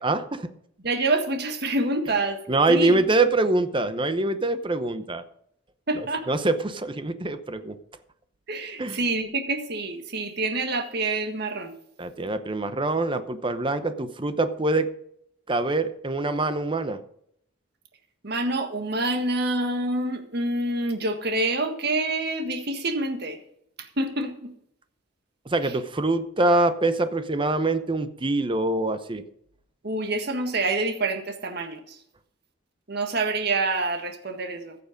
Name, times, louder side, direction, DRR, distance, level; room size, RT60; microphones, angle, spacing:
voice 1, 0.0-0.5 2.5-5.2 5.9-7.8 8.8-9.0 12.0-14.9 15.5-17.0 25.5-29.2, right 2 dB, 25° right, 11 dB, 0.8 m, -24 dB
voice 2, 0.8-2.4 2.7-3.0 5.9-6.2 8.5-11.7 18.2-23.4 23.8-24.5 25.6-25.7 29.8-32.0 32.9-34.8, right 2 dB, 55° right, 6 dB, 1.7 m, -27 dB
15.0 x 6.9 x 5.1 m, 0.72 s
head